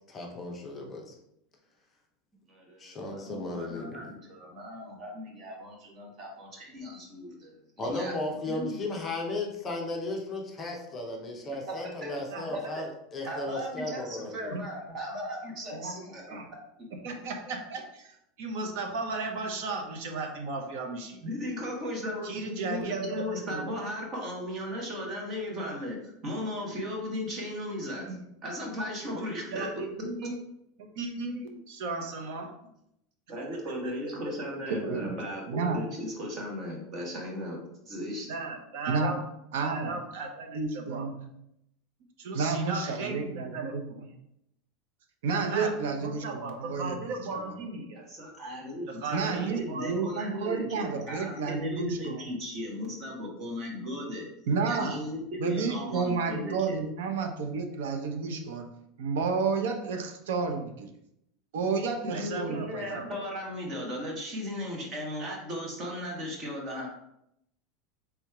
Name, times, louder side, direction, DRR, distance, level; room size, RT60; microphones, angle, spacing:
voice 1, 0.1-1.2 2.8-4.1 7.8-14.6, left 2 dB, 15° left, 0 dB, 0.7 m, -35 dB
voice 2, 2.5-8.9 11.7-12.1 12.5-12.8 13.2-16.4 21.2-28.2 28.4-30.3 33.3-38.3 48.0-54.3 54.7-56.8 62.0-66.9, equal, 25° right, -1 dB, 1.1 m, -37 dB
voice 3, 17.0-21.2 22.2-23.7 28.1-28.2 29.5-29.7 30.0-30.4 30.8-32.5 38.2-39.2 39.6-41.0 42.2-44.0 45.5-48.1 48.9-50.1 62.1-63.2, right 3 dB, 55° right, 3 dB, 0.7 m, -36 dB
voice 4, 34.7-35.2 35.5-35.8 38.9-39.2 39.5-40.0 40.5-41.3 42.3-44.1 45.2-47.0 47.3-47.5 49.1-52.2 54.5-55.0 55.4-58.7 59.0-60.9 61.5-63.1, right 4 dB, 90° right, 5 dB, 0.6 m, -31 dB
3.4 x 3.0 x 4.7 m, 0.79 s
supercardioid pair, 175°, 0 cm